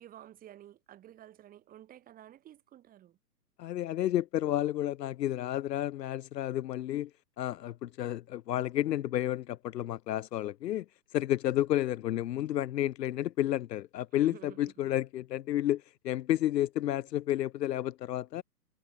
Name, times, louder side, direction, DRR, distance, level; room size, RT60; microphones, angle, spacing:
voice 1, 0.0-3.2 14.2-14.9, right 12 dB, 15° right, 4.6 m, -52 dB
voice 2, 3.6-7.1 7.4-10.9 11.1-18.4, left 13 dB, 75° left, 0.5 m, -31 dB
hypercardioid pair, 140°, 49 cm